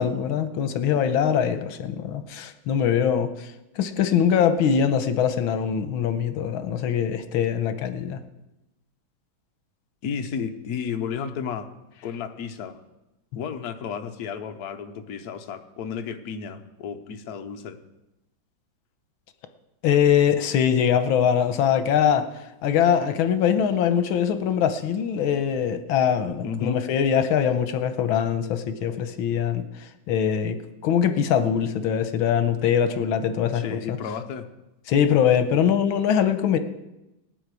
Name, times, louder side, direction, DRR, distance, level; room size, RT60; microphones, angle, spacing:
voice 1, 0.0-8.2 19.8-30.6 30.8-34.0 34.9-36.6, left 8 dB, 90° left, 9 dB, 1.6 m, -22 dB
voice 2, 10.0-11.7 12.0-12.8 13.3-17.8 26.4-26.8 33.5-34.5, left 7 dB, 60° left, 7 dB, 1.3 m, -32 dB
19.0 x 7.9 x 4.8 m, 0.96 s
omnidirectional pair, 2.2 m